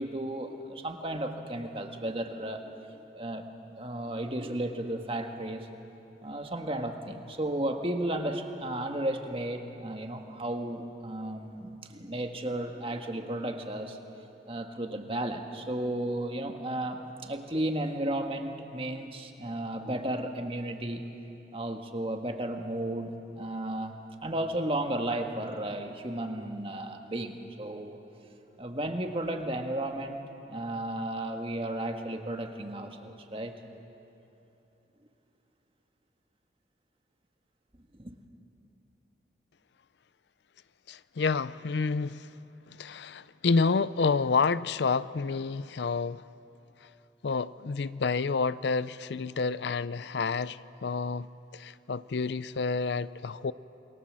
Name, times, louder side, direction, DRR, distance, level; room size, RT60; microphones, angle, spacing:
voice 1, 0.0-3.4 3.8-5.7 6.2-14.0 14.5-21.0 21.5-28.0 28.6-30.2 30.5-33.5 37.9-38.2, right 1 dB, 30° right, 1.6 m, -34 dB
voice 2, 40.9-42.3 42.8-46.2 47.2-51.3 51.5-53.5, left 4 dB, 65° left, 0.5 m, -29 dB
28.0 x 22.5 x 7.6 m
head